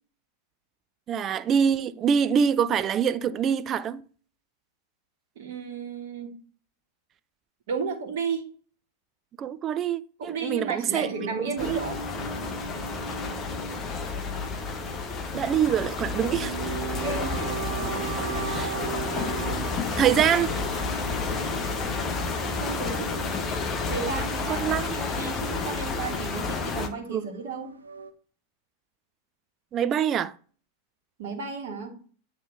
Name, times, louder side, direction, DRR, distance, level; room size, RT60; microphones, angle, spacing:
voice 1, 1.1-4.0 9.4-11.8 15.3-16.8 18.5-18.8 20.0-20.5 24.5-24.9 27.1-27.2 29.7-30.3, right 8 dB, 30° right, 0.4 m, -25 dB
voice 2, 5.3-6.3 7.7-8.5 10.2-12.0 17.0-17.4 18.1-18.2 22.4-23.3 23.9-27.7 31.2-32.0, right 5 dB, 55° right, 1.6 m, -33 dB
sound 1, 10.9-28.1, right 5 dB, 75° right, 0.6 m, -38 dB
sound 2, 11.6-26.9, left 4 dB, 25° left, 0.9 m, -31 dB
8.7 x 3.3 x 3.6 m
figure-of-eight pair, 90°, 0 cm